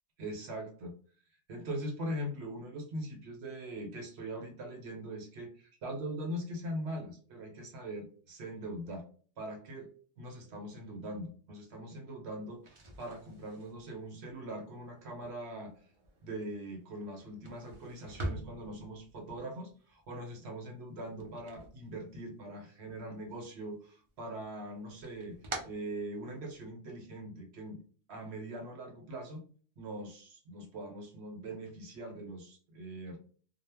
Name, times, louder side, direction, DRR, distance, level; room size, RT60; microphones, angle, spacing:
voice 1, 0.2-0.9 1.5-9.0 9.4-9.9 10.2-15.7 16.2-25.4 25.6-27.8 28.1-29.4 29.8-33.2, right 1 dB, 65° right, 2 dB, 1.0 m, -41 dB
sound 1, 12.5-22.5 22.8-23.7 24.1-26.7, right 1 dB, 50° right, 0.3 m, -46 dB
2.1 x 2.1 x 3.2 m, 0.43 s
omnidirectional pair, 1.2 m